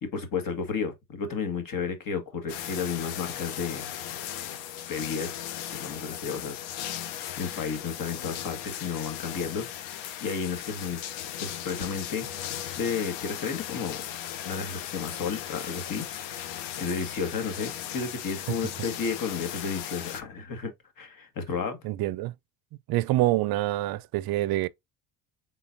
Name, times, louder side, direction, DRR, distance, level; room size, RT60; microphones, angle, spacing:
voice 1, 0.0-3.9 4.9-5.3 5.7-6.5 6.8-9.7 10.2-11.0 11.4-12.3 12.8-14.0 14.4-20.7 21.0-21.8, left 5 dB, 45° left, 1.6 m, -32 dB
sound 1, 2.5-20.2, left 11 dB, 80° left, 0.8 m, -37 dB
voice 2, 21.8-22.3 22.9-24.7, right 16 dB, 55° right, 0.5 m, -26 dB
4.1 x 3.8 x 2.6 m
supercardioid pair, 70°, 45 cm